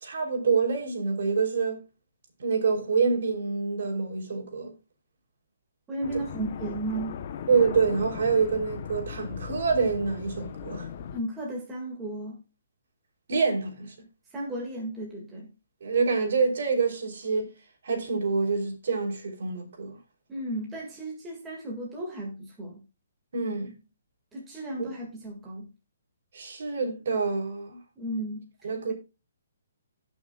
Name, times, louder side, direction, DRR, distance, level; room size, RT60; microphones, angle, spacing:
voice 1, 0.0-1.8 2.4-4.7 7.5-10.9 13.3-13.9 15.8-17.5 17.8-20.0 23.3-23.7 24.8-24.9 26.3-27.8 28.6-28.9, right 4 dB, 50° right, 3.1 m, -26 dB
voice 2, 5.9-7.3 11.1-12.4 14.3-15.5 20.3-22.8 24.3-25.7 28.0-28.9, right 1 dB, 5° right, 1.9 m, -35 dB
sound 1, 6.0-11.2, left 8 dB, 30° left, 0.8 m, -38 dB
18.0 x 6.2 x 2.3 m
hypercardioid pair, 180°, 0 cm